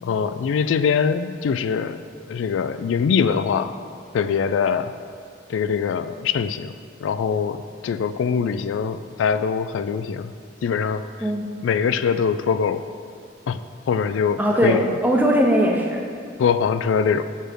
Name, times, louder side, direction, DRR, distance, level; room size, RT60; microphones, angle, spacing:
voice 1, 0.0-2.0 2.3-3.7 4.1-4.9 5.5-6.7 7.0-10.3 10.6-11.0 11.6-12.8 13.5-13.6 13.9-14.8 16.4-17.2, left 6 dB, 80° left, 11 dB, 0.3 m, -22 dB
voice 2, 11.2-11.5 14.4-16.1, equal, 10° right, 0 dB, 0.7 m, -20 dB
6.6 x 6.1 x 5.1 m, 2.2 s
head